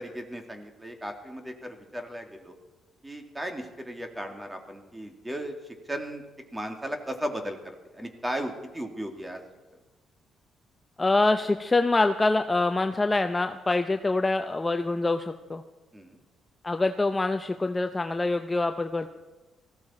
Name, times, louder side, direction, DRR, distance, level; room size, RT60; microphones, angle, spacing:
voice 1, 0.0-2.5 3.0-5.5 5.9-6.2 6.5-7.6 7.9-9.4 15.9-16.2, equal, 10° right, 4 dB, 2.4 m, -36 dB
voice 2, 11.0-15.6 16.6-19.1, left 2 dB, 20° left, 7 dB, 0.6 m, -25 dB
19.0 x 15.0 x 4.3 m, 1.1 s
cardioid pair, 90°, 0 cm